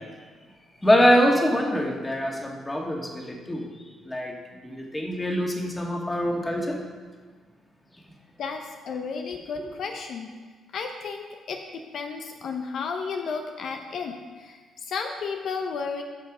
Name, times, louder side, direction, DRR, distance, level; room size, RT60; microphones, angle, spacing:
voice 1, 0.8-3.7 4.0-4.3 4.6-6.8 9.5-9.7, equal, 15° left, 0 dB, 1.9 m, -24 dB
voice 2, 8.4-10.3 10.7-11.6 11.9-16.0, left 5 dB, 65° left, 4 dB, 0.8 m, -33 dB
13.5 x 5.4 x 5.1 m, 1.5 s
cardioid pair, 90°, 0 cm